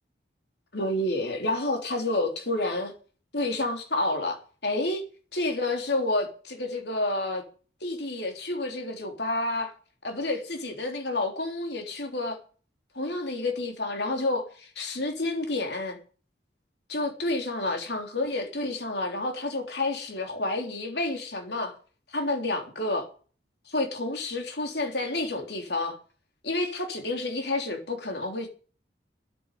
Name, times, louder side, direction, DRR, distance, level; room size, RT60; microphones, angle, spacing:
voice 1, 0.7-2.9 3.3-5.0 5.3-7.4 7.8-9.7 10.0-12.4 13.0-16.0 16.9-21.7 22.1-23.1 23.7-26.0 26.4-28.5, left 2 dB, 65° left, 3.4 m, -29 dB
10.5 x 8.8 x 8.7 m
head